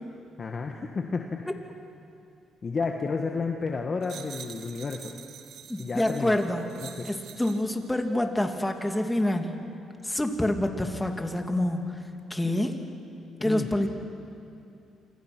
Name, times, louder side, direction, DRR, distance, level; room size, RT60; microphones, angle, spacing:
voice 1, 0.4-1.5 2.6-5.1 5.8-6.4 6.8-7.1 13.4-13.7, left 4 dB, 40° left, 3 dB, 1.6 m, -31 dB
sound 1, 4.0-7.8 8.4-8.6, right 8 dB, 75° right, 1.6 m, -46 dB
voice 2, 5.7-6.7 7.0-9.5 10.0-12.0 12.3-12.8 13.4-13.9, left 1 dB, 10° left, 4 dB, 2.5 m, -27 dB
28.0 x 26.5 x 6.2 m, 2.6 s
cardioid pair, 90°, 0 cm